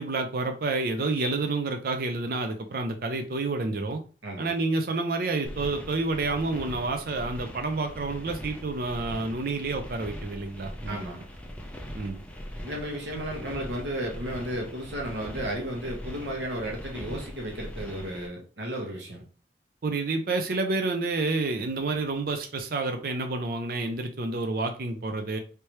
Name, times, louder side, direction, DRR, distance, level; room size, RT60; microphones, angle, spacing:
voice 1, 0.0-4.0 4.4-11.1 11.9-12.2 19.8-25.4, right 3 dB, 55° right, 5 dB, 0.5 m, -29 dB
sound 1, 5.4-18.3, equal, 10° left, 0.5 m, -41 dB
voice 2, 10.9-11.3 12.6-19.2, right 1 dB, 80° right, -1 dB, 1.1 m, -34 dB
3.3 x 3.2 x 2.9 m, 0.37 s
head